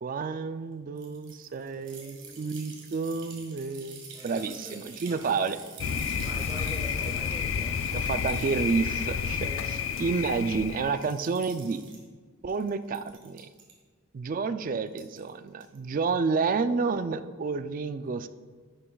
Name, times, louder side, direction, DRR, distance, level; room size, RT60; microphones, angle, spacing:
voice 1, 0.0-5.6 7.9-11.8 12.4-13.5 14.1-18.3, right 4 dB, 40° right, 11 dB, 0.3 m, -30 dB
sound 1, 1.0-9.6 9.9-10.6 11.0-12.0 12.5-13.7 14.9-15.3 15.6-15.8, right 5 dB, 65° right, 1.8 m, -48 dB
voice 2, 1.8-2.5 4.1-5.3 5.6-5.7 6.2-7.9 9.4-9.8, equal, 15° right, 1 dB, 1.2 m, -45 dB
Thunder, 5.8-11.1, left 6 dB, 75° left, 0.4 m, -30 dB
10.5 x 6.9 x 2.3 m, 1.5 s
head